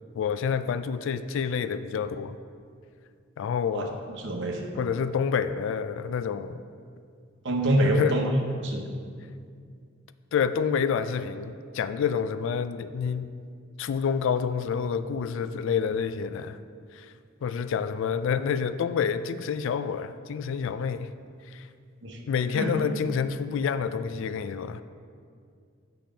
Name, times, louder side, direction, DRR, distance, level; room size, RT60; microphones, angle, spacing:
voice 1, 0.2-2.4 3.4-4.0 4.8-6.6 7.8-8.3 10.3-13.3 13.8-16.6 16.9-17.1 17.4-21.1 21.5-21.6 22.3-24.8, left 6 dB, 65° left, 12 dB, 0.3 m, -28 dB
voice 2, 4.2-4.7 7.4-8.3 8.6-8.8 22.0-22.2 22.5-22.7, right 1 dB, 65° right, 2 dB, 1.0 m, -26 dB
7.3 x 6.0 x 5.1 m, 2.2 s
head